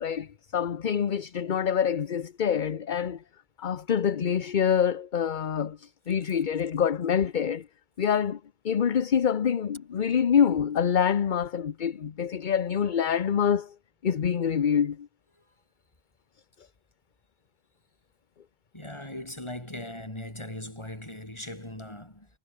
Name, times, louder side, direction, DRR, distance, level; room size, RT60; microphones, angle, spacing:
voice 1, 0.0-3.2 3.6-7.7 8.0-8.4 8.6-13.7 14.0-15.1, left 8 dB, 50° left, 0.9 m, -26 dB
voice 2, 18.7-22.3, left 1 dB, 25° left, 4.4 m, -39 dB
omnidirectional pair, 1.1 m